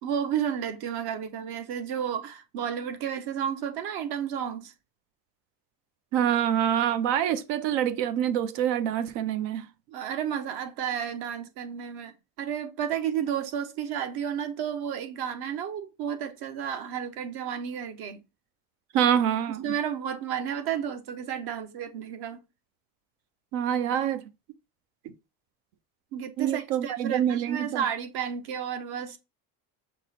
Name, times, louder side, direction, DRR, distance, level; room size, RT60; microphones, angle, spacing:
voice 1, 0.0-4.7 9.9-18.2 19.5-22.4 26.1-29.2, right 8 dB, 70° right, 0.9 m, -32 dB
voice 2, 6.1-9.7 18.9-19.7 23.5-24.2 25.0-25.1 26.4-27.8, right 9 dB, 90° right, 0.7 m, -26 dB
5.8 x 2.1 x 4.2 m
cardioid pair, 115°, 40 cm